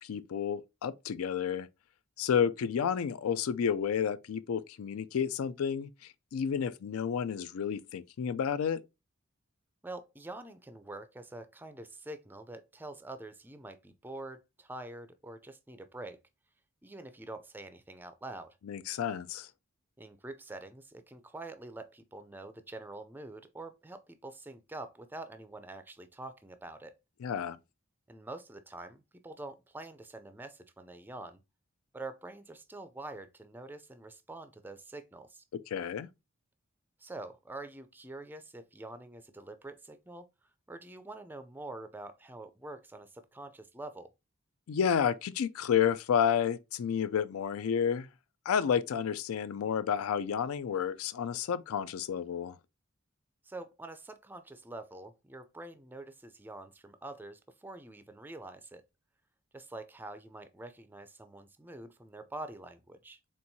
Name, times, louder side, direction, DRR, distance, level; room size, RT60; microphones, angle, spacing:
voice 1, 0.0-1.7 2.2-8.8 18.6-19.5 27.2-27.6 35.7-36.1 44.7-48.1 48.5-52.6, left 7 dB, 85° left, 0.4 m, -31 dB
voice 2, 9.8-16.2 16.8-18.6 20.0-27.0 28.1-31.4 31.9-35.4 37.0-40.3 40.7-44.1 53.4-58.8 59.5-63.2, right 2 dB, 10° right, 0.3 m, -46 dB
4.4 x 3.5 x 2.6 m
head